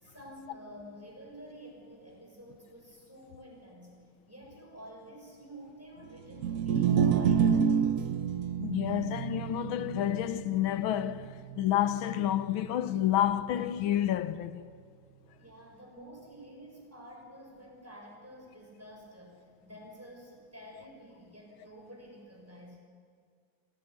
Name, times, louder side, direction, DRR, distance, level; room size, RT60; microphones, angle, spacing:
voice 1, 0.0-3.9 4.3-8.1 15.4-22.8, equal, 5° right, 6.5 m, -50 dB
sound 1, 6.3-12.7, right 7 dB, 60° right, 0.9 m, -29 dB
voice 2, 8.6-14.8, left 11 dB, 80° left, 1.6 m, -29 dB
26.0 x 18.0 x 9.6 m
omnidirectional pair, 2.2 m